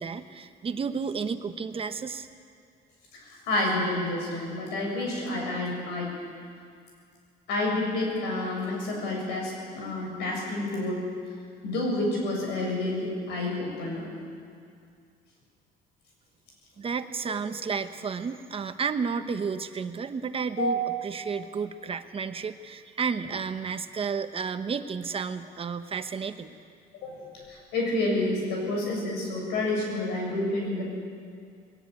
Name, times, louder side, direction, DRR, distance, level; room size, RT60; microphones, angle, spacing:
voice 1, 0.0-2.3 16.8-26.5, right 5 dB, 35° right, 9 dB, 1.0 m, -32 dB
voice 2, 3.1-6.1 7.5-11.1 11.6-14.1 20.6-21.0 27.0-27.2 27.5-30.8, left 1 dB, 85° left, -1 dB, 7.5 m, -29 dB
20.5 x 19.0 x 8.3 m, 2.2 s
cardioid pair, 110°, 17 cm